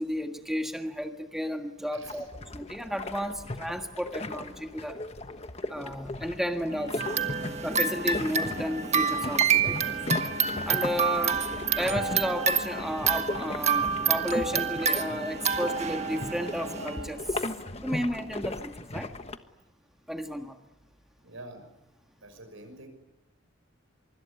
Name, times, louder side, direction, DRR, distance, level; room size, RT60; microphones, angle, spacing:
voice 1, 0.0-5.0 5.7-7.1 7.6-10.0 10.7-11.5 11.8-17.5 17.8-19.1 20.1-20.6, equal, ahead, 4 dB, 1.6 m, -33 dB
voice 2, 1.9-2.2 7.4-7.5 21.2-21.7 22.2-22.9, right 2 dB, 85° right, 10 dB, 6.2 m, -46 dB
sound 1, 2.0-19.4, left 2 dB, 30° left, 1.3 m, -37 dB
sound 2, 6.7-17.1, equal, 60° right, 6.5 m, -42 dB
sound 3, 7.0-17.0, right 6 dB, 35° right, 1.5 m, -28 dB
25.0 x 24.5 x 9.8 m, 1.0 s
head